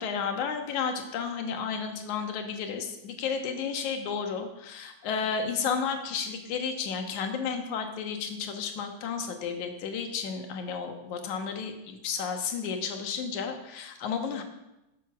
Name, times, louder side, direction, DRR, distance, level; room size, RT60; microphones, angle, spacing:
voice 1, 0.0-14.4, left 6 dB, 65° left, 5 dB, 2.6 m, -32 dB
13.5 x 8.0 x 6.0 m, 0.94 s
omnidirectional pair, 3.8 m